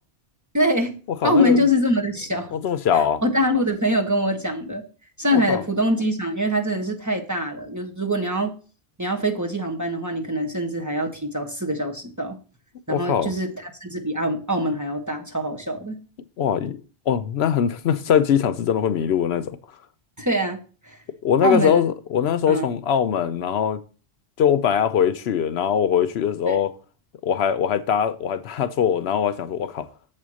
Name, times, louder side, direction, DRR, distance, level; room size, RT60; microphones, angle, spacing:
voice 1, 0.5-0.9 1.2-2.5 2.9-4.8 5.2-8.5 9.0-12.4 12.9-13.5 13.8-16.0 20.2-20.6 20.9-21.0 21.4-21.8 22.5-22.7 26.5-26.6, equal, 15° right, 1.1 m, -23 dB
voice 2, 1.2-1.6 2.5-3.2 5.3-5.6 12.9-13.3 16.4-19.5 21.2-23.8 24.4-26.7 27.2-29.9, left 8 dB, 75° left, 0.9 m, -22 dB
7.4 x 4.3 x 6.2 m
omnidirectional pair, 1.1 m